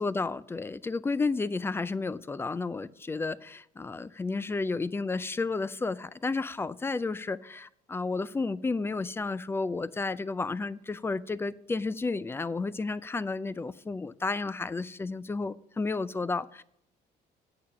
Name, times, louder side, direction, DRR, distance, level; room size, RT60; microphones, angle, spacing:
voice 1, 0.0-16.6, left 3 dB, 15° left, 0.3 m, -32 dB
8.5 x 6.6 x 5.8 m
cardioid pair, 110°, 17 cm